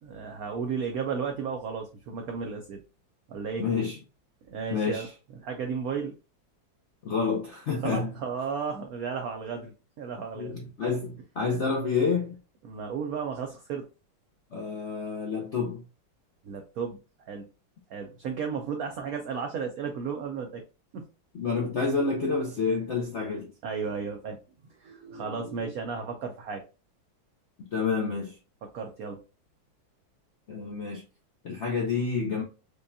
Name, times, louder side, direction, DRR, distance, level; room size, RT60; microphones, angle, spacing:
voice 1, 0.0-2.8 3.3-3.7 4.5-5.1 5.4-6.2 7.7-10.6 12.6-13.9 16.4-17.0 17.3-17.4 17.9-20.6 20.9-21.0 23.6-24.4 24.8-26.6 28.7-29.2, right 6 dB, 85° right, 0.7 m, -34 dB
voice 2, 3.6-4.0 4.7-5.1 7.0-8.1 10.3-12.3 14.5-15.8 21.3-23.5 27.6-28.4 30.5-31.0 31.4-32.4, left 4 dB, 70° left, 0.6 m, -29 dB
5.0 x 2.3 x 2.6 m
omnidirectional pair, 2.2 m